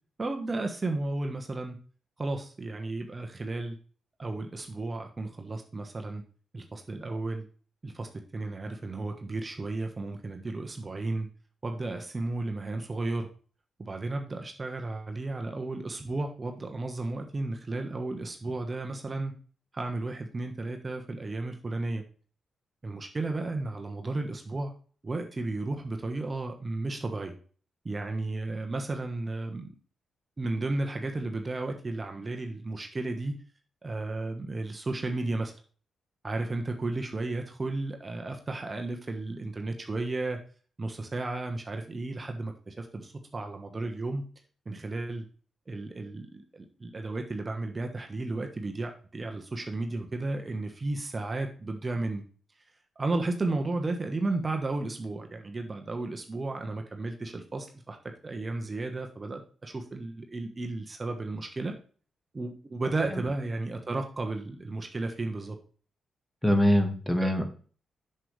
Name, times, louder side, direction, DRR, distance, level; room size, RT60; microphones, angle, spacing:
voice 1, 0.2-1.8 2.2-3.8 4.2-6.2 6.5-7.4 7.8-11.3 11.6-13.3 13.8-19.3 19.7-22.0 22.8-24.7 25.0-27.3 27.8-29.7 30.4-33.4 33.8-35.5 36.2-40.4 40.8-44.2 44.6-45.2 45.7-52.2 53.0-58.0 58.2-61.7 62.3-65.6 67.2-67.3, right 2 dB, 35° right, 4 dB, 1.2 m, -33 dB
voice 2, 66.4-67.4, equal, 10° left, 5 dB, 1.9 m, -23 dB
7.5 x 6.9 x 3.3 m, 0.41 s
hypercardioid pair, 40°, 0 cm